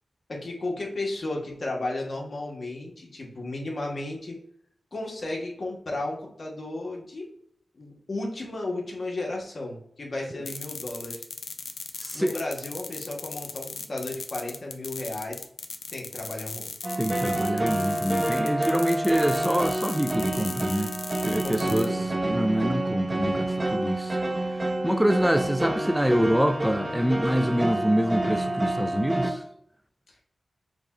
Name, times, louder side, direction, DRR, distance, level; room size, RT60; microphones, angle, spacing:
voice 1, 0.3-4.4 4.9-7.3 7.7-11.2 12.1-15.4 15.9-16.7 21.4-22.0 30.1-30.2, left 2 dB, 60° left, 1.4 m, -34 dB
sound 1, 10.5-21.9, left 4 dB, 80° left, 0.5 m, -38 dB
voice 2, 12.0-12.4 17.0-20.9 21.2-22.0 22.2-24.2 24.8-29.4, equal, 5° right, 0.4 m, -25 dB
sound 2, 16.8-29.3, right 1 dB, 30° right, 0.7 m, -28 dB
5.2 x 2.4 x 4.2 m
cardioid pair, 45°, 0 cm